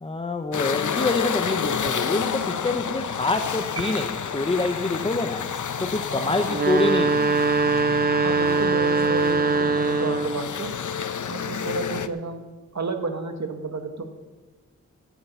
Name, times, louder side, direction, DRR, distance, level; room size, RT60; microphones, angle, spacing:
voice 1, 0.0-5.4 5.8-7.3, left 3 dB, 20° left, 6 dB, 0.7 m, -26 dB
sound 1, 0.5-12.1, left 7 dB, 80° left, 0.7 m, -30 dB
sound 2, 3.8-5.0, right 8 dB, 50° right, 1.5 m, -40 dB
voice 2, 6.1-6.6 8.2-10.7 11.3-12.4 12.7-14.0, right 3 dB, 65° right, 5 dB, 1.6 m, -31 dB
sound 3, 6.5-10.5, right 3 dB, 30° right, 0.6 m, -22 dB
14.5 x 9.2 x 6.9 m, 1.3 s
wide cardioid pair, 95°, 30 cm